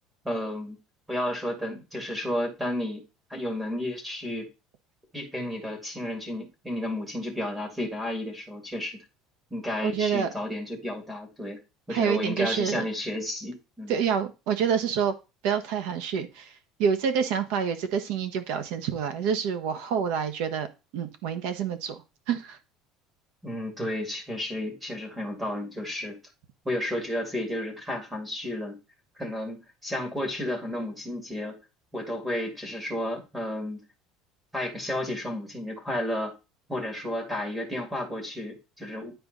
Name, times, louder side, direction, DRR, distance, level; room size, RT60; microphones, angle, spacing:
voice 1, 0.2-0.8 1.1-3.0 3.3-4.5 5.1-9.0 9.5-11.6 11.9-14.0 23.4-26.2 26.6-28.8 29.1-31.6 31.9-33.8 34.5-36.3 36.7-39.1, left 1 dB, 10° right, 2.4 m, -32 dB
voice 2, 9.8-10.3 11.9-12.9 13.9-15.1 15.4-16.5 16.8-20.7 20.9-22.0 22.3-22.6, right 7 dB, 70° right, 1.3 m, -27 dB
10.5 x 4.5 x 4.0 m
cardioid pair, 165°, 0 cm